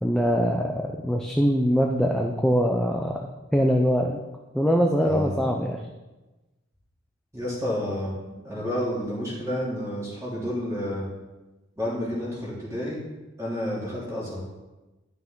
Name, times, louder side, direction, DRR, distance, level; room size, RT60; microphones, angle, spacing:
voice 1, 0.0-3.3 3.5-4.2 4.5-5.8, equal, 5° left, 0 dB, 0.5 m, -23 dB
voice 2, 5.0-5.4 7.3-11.0 11.8-13.0 13.4-14.4, equal, 15° right, -7 dB, 2.9 m, -30 dB
11.0 x 5.9 x 3.8 m, 1.1 s
head